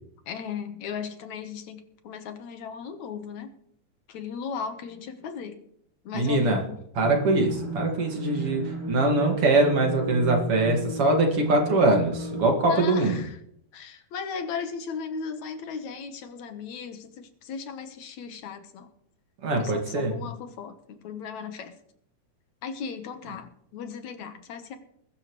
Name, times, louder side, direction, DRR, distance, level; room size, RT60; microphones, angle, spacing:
voice 1, 0.3-3.5 4.1-5.6 6.0-6.8 12.7-13.4 13.7-18.9 19.6-21.7 22.6-24.8, left 6 dB, 70° left, 7 dB, 2.5 m, -37 dB
voice 2, 6.1-6.6 7.0-13.2 19.4-20.1, right 2 dB, 50° right, 2 dB, 2.8 m, -23 dB
sound 1, 7.0-12.5, right 2 dB, 15° right, 1.3 m, -33 dB
21.5 x 12.0 x 3.2 m, 0.70 s
omnidirectional pair, 3.5 m